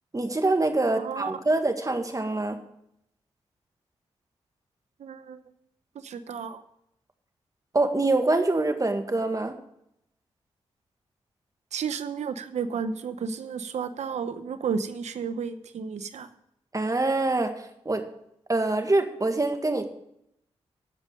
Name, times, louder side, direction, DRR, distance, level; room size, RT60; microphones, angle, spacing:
voice 1, 0.1-2.6 7.7-9.6 16.7-17.5 17.8-18.0 18.5-19.9, right 2 dB, 30° right, 6 dB, 1.8 m, -25 dB
voice 2, 1.0-1.3 5.0-5.4 6.0-6.6 11.7-16.3, right 6 dB, 80° right, 11 dB, 0.9 m, -32 dB
15.0 x 5.3 x 6.6 m, 0.77 s
supercardioid pair, 40°, 12 cm